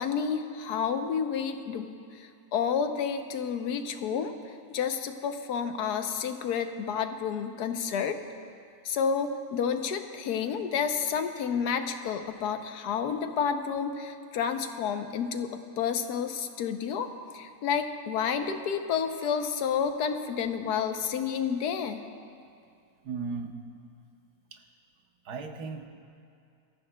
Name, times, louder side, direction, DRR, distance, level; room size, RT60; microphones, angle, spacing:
voice 1, 0.0-1.9 2.1-4.3 4.7-8.2 8.8-22.0, left 7 dB, 85° left, 7 dB, 1.3 m, -30 dB
voice 2, 23.0-23.5 24.5-24.6 25.2-25.9, right 4 dB, 85° right, 4 dB, 1.5 m, -36 dB
24.5 x 14.0 x 2.2 m, 2.4 s
omnidirectional pair, 1.6 m